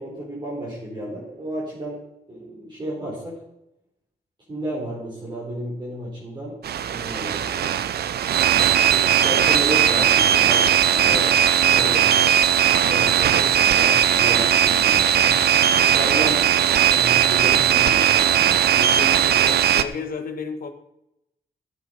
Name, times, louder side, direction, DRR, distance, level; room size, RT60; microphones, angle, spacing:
voice 1, 0.0-2.0 2.3-3.4 4.5-6.5 6.9-7.7 8.9-11.3 11.7-12.4 12.8-15.3 15.9-16.4 16.9-18.5, right 1 dB, 25° right, -6 dB, 4.6 m, -32 dB
sound 1, 6.6-19.8, right 10 dB, 85° right, 0.7 m, -18 dB
voice 2, 11.1-12.1 18.7-20.7, left 5 dB, 65° left, 7 dB, 1.6 m, -33 dB
14.0 x 8.5 x 5.4 m, 0.83 s
wide cardioid pair, 180°, 16 cm